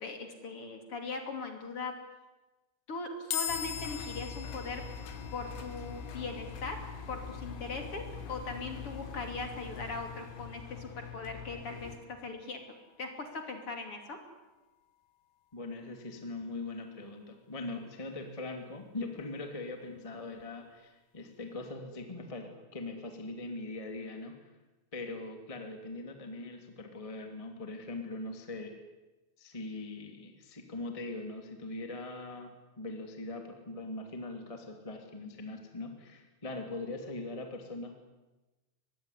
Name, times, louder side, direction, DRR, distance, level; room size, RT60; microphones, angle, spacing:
voice 1, 0.0-1.9 2.9-4.8 5.3-6.8 7.1-8.0 8.3-14.2, left 3 dB, 35° left, 5 dB, 2.9 m, -40 dB
sound 1, 3.3-16.6, left 9 dB, 70° left, 1.9 m, -46 dB
Engine, 3.5-12.0, left 6 dB, 90° left, 5.3 m, -44 dB
voice 2, 15.5-24.3 24.9-28.7 29.4-38.0, left 2 dB, 15° left, 4 dB, 1.4 m, -41 dB
24.0 x 20.0 x 10.0 m, 1.1 s
omnidirectional pair, 5.3 m